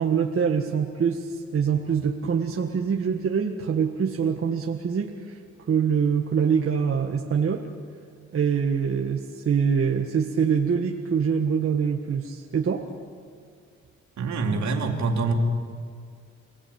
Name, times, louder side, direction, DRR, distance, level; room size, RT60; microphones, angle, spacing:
voice 1, 0.0-5.4 5.7-7.6 8.3-12.9, right 6 dB, 45° right, 2 dB, 1.8 m, -24 dB
voice 2, 14.2-15.3, right 4 dB, 65° right, 2 dB, 3.6 m, -25 dB
29.0 x 19.0 x 9.0 m, 2.1 s
cardioid pair, 90°, 30 cm